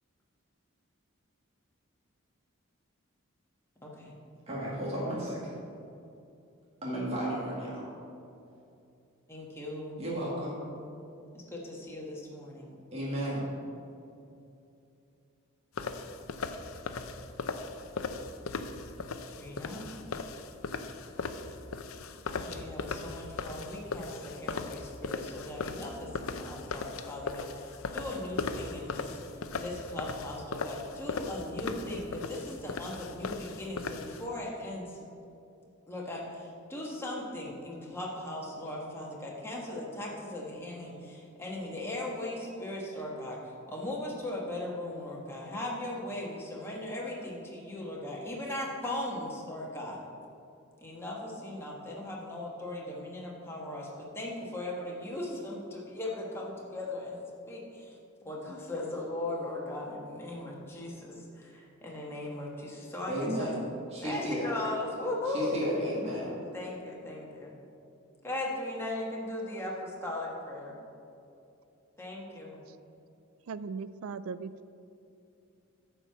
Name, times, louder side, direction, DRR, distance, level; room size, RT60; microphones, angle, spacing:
voice 1, 3.8-4.2 9.3-10.0 11.3-12.8 19.3-19.9 22.3-35.0 35.9-50.0 50.8-57.2 57.5-63.5 64.0-65.7 66.1-66.2 66.5-67.5 68.2-70.7 72.0-72.6, left 1 dB, 10° left, -4 dB, 1.5 m, -38 dB
voice 2, 4.5-5.5 6.8-7.8 10.0-10.7 12.9-13.5 63.1-63.5 63.9-64.5 65.3-66.4, equal, 30° right, -6 dB, 1.8 m, -33 dB
sound 1, 15.8-34.2, left 4 dB, 75° left, 0.6 m, -38 dB
voice 3, 73.5-74.7, right 5 dB, 75° right, 15 dB, 0.4 m, -38 dB
9.6 x 4.6 x 7.0 m, 2.7 s
head